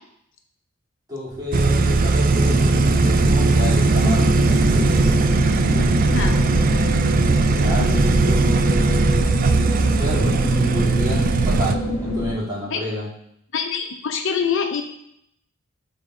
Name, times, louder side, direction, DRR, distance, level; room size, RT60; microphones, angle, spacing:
voice 1, 1.1-4.9 5.7-6.2 7.6-8.7 9.8-13.1, left 1 dB, 15° right, -8 dB, 2.9 m, -30 dB
sound 1, 1.3-6.3, equal, 60° right, 1.8 m, -38 dB
sound 2, 1.5-11.8, right 3 dB, 40° right, 0.4 m, -18 dB
sound 3, 2.3-12.3, equal, 30° left, 1.8 m, -25 dB
voice 2, 13.5-14.8, left 6 dB, 60° left, 5 dB, 0.6 m, -24 dB
7.0 x 4.0 x 5.0 m, 0.74 s
head